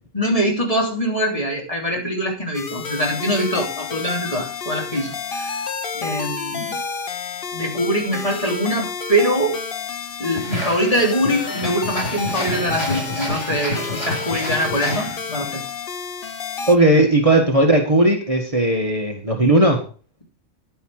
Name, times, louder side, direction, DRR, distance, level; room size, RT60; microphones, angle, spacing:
voice 1, 0.1-5.7 5.9-6.8 7.5-9.6 10.2-15.6, equal, 30° left, -1 dB, 3.4 m, -23 dB
sound 1, 2.5-16.8, left 5 dB, 50° left, 1.1 m, -30 dB
sound 2, 10.3-15.6, left 1 dB, 75° left, 4.5 m, -29 dB
voice 2, 16.7-19.8, right 1 dB, 30° right, 1 dB, 1.9 m, -16 dB
10.5 x 10.0 x 4.9 m, 0.39 s
omnidirectional pair, 1.2 m